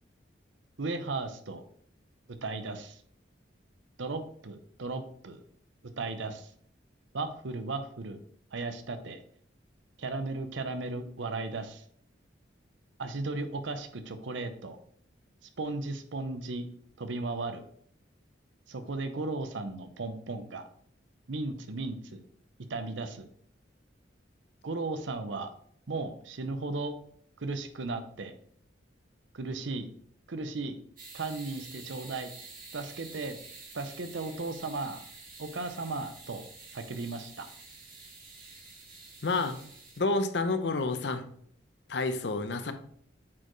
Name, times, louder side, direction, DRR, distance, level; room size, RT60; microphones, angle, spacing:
voice 1, 0.8-1.6 2.3-3.0 4.0-5.4 6.0-6.5 7.1-8.2 8.5-9.2 10.0-11.8 13.0-14.8 15.6-16.7 17.0-17.7 18.7-20.6 21.3-22.2 22.7-23.3 24.6-25.5 25.9-26.9 27.4-28.3 29.3-29.9 30.3-30.8 31.1-32.3 32.7-33.4 33.7-35.0 35.4-36.5 36.7-37.5, right 3 dB, 80° right, 9 dB, 0.7 m, -35 dB
sound 1, 31.0-40.0, right 3 dB, 45° right, 1.7 m, -49 dB
voice 2, 39.2-39.6 40.0-41.2 41.9-42.7, left 3 dB, 65° left, 9 dB, 0.7 m, -29 dB
8.5 x 4.4 x 3.1 m, 0.62 s
head